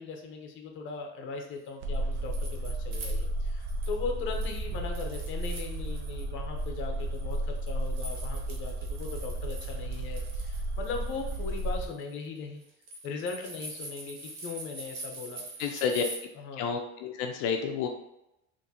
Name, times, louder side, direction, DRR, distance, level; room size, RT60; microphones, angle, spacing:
voice 1, 0.0-12.6 13.0-15.4 16.4-16.7, left 4 dB, 40° left, 3 dB, 0.7 m, -39 dB
sound 1, 1.8-11.9, right 1 dB, 45° right, 0.4 m, -33 dB
sound 2, 1.9-4.0 4.3-6.2 6.6-16.2, right 2 dB, 70° right, 1.1 m, -44 dB
voice 2, 15.6-16.0 16.6-17.9, left 6 dB, 80° left, 4 dB, 0.5 m, -30 dB
3.6 x 2.6 x 2.8 m, 0.85 s
cardioid pair, 130°, 29 cm